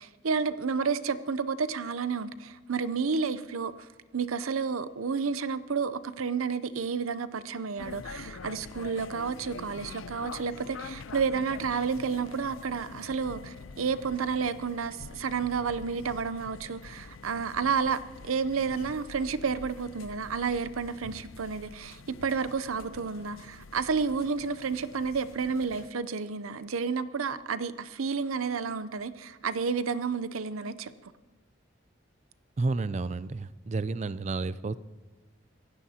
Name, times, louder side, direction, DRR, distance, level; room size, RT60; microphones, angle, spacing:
voice 1, 0.0-31.1, right 5 dB, 90° right, 0.6 m, -31 dB
sound 1, 7.8-25.9, left 4 dB, 80° left, 0.6 m, -46 dB
voice 2, 32.6-34.7, right 3 dB, 35° right, 0.4 m, -31 dB
25.0 x 16.5 x 2.9 m
head